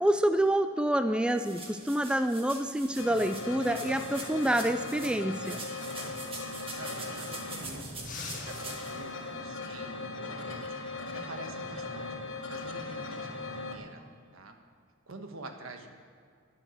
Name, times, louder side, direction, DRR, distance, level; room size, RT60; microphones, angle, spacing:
voice 1, 0.0-5.6, right 1 dB, 5° right, 9 dB, 0.3 m, -27 dB
sound 1, 1.3-5.1 5.4-8.9, right 3 dB, 25° right, 1.8 m, -44 dB
sound 2, 3.0-13.8, left 3 dB, 65° left, 1.7 m, -39 dB
voice 2, 6.5-14.0 14.3-14.6 15.1-15.9, right 2 dB, 80° right, 5 dB, 1.4 m, -47 dB
sound 3, 6.7-7.6 8.0-9.7 12.2-12.5 13.9-14.4, left 5 dB, 40° left, 1.7 m, -47 dB
12.0 x 10.0 x 6.4 m, 2.2 s
head